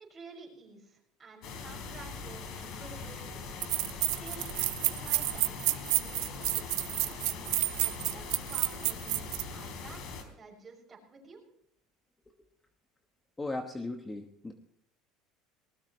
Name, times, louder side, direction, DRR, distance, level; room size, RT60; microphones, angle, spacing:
voice 1, 0.1-3.4 4.0-11.4, right 3 dB, 20° right, -2 dB, 6.5 m, -51 dB
sound 1, 1.4-10.2, left 5 dB, 55° left, 3.7 m, -42 dB
sound 2, 3.0-3.1 3.6-9.5, right 19 dB, 80° right, 0.9 m, -30 dB
voice 2, 13.4-14.5, left 2 dB, 10° left, 5 dB, 1.1 m, -37 dB
20.5 x 19.5 x 3.2 m, 0.73 s
cardioid pair, 140°, 0 cm